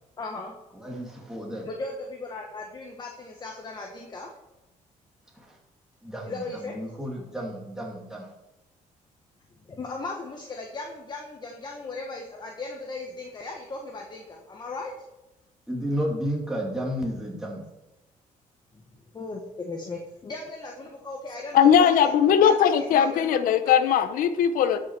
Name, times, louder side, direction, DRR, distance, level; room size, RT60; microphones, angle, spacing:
voice 1, 0.2-0.5 1.6-4.3 6.2-6.8 9.7-14.9 18.7-18.8 19.1-22.1 22.4-23.8, left 3 dB, 30° left, 1 dB, 1.5 m, -37 dB
voice 2, 0.8-1.7 5.4-5.6 6.0-8.3 15.7-17.7, equal, 5° right, -2 dB, 2.4 m, -32 dB
voice 3, 21.5-24.8, left 8 dB, 80° left, 11 dB, 0.9 m, -19 dB
12.5 x 6.2 x 4.6 m, 0.98 s
cardioid pair, 105°, 14 cm